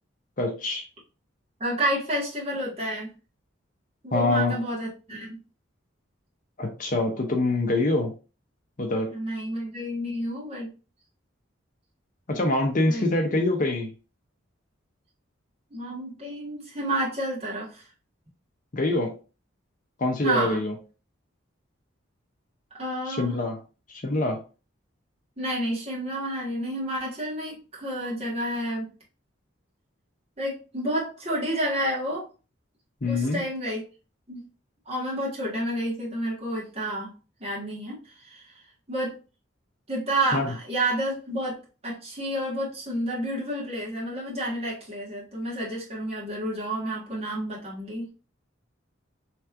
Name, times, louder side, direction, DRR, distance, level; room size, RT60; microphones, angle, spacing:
voice 1, 0.4-0.9 4.1-4.6 6.6-8.1 8.8-9.1 12.3-13.9 18.7-19.2 20.0-20.7 23.1-23.6 23.9-24.4 33.0-33.4 40.3-40.5, left 2 dB, 40° left, 0.6 m, -25 dB
voice 2, 1.6-3.1 4.0-5.4 9.1-10.7 12.9-13.0 15.7-17.9 20.2-20.6 22.8-23.3 25.4-28.9 30.4-32.3 33.1-33.8 34.3-34.5 34.8-37.1 37.4-38.5 38.9-39.1 39.9-41.6 41.8-48.1, right 1 dB, 30° right, 1.6 m, -30 dB
3.3 x 3.1 x 3.5 m
head